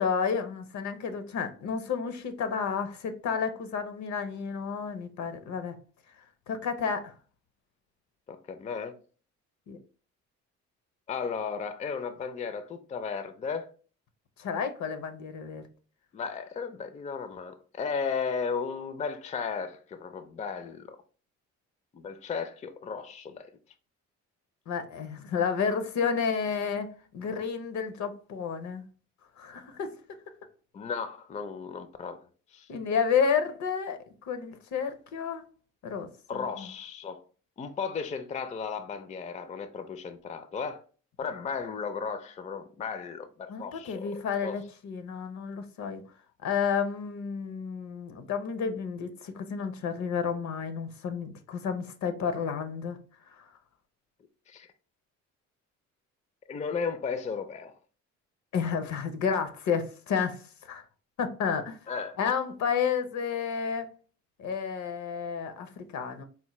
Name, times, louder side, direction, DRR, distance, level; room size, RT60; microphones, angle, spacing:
voice 1, 0.0-5.8 6.5-7.1 9.7-9.8 14.4-15.6 24.7-26.9 27.1-28.8 29.4-30.0 32.7-34.0 34.3-35.4 35.8-36.7 43.5-46.0 46.4-53.0 53.3-53.4 58.5-60.4 60.6-60.8 61.2-61.8 62.2-63.9 64.4-66.2, left 6 dB, 70° left, 0.6 m, -31 dB
voice 2, 8.3-9.0 11.1-13.7 16.1-21.0 21.9-23.5 30.7-32.2 32.5-32.7 36.3-37.2 37.6-40.8 41.2-44.6 54.5-54.7 56.5-57.7 61.9-62.2, left 5 dB, 25° left, 0.4 m, -35 dB
4.3 x 2.1 x 3.0 m
cardioid pair, 90°, 30 cm